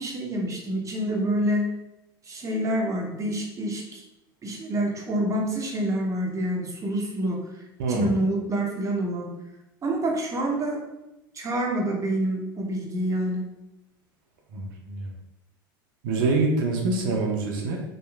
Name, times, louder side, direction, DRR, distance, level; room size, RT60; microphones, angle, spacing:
voice 1, 0.0-1.7 2.2-4.0 4.4-7.4 7.9-9.3 9.8-10.8 11.3-13.5, right 1 dB, 25° right, 1 dB, 0.7 m, -27 dB
voice 2, 7.8-8.1 14.5-15.1 16.0-17.8, right 3 dB, 70° right, 1 dB, 0.5 m, -25 dB
2.8 x 2.4 x 2.3 m, 0.95 s
hypercardioid pair, 80°, 12 cm